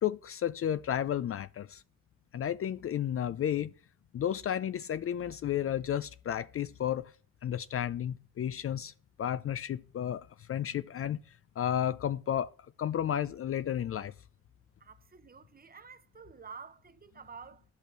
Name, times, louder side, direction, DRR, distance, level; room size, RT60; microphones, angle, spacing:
voice 1, 0.0-1.8 2.3-3.7 4.1-7.1 7.4-8.9 9.2-11.2 11.6-12.5 12.8-14.1, left 10 dB, 40° left, 0.4 m, -32 dB
voice 2, 14.8-17.6, right 5 dB, 25° right, 0.8 m, -50 dB
10.0 x 5.6 x 6.1 m
cardioid pair, 85°, 34 cm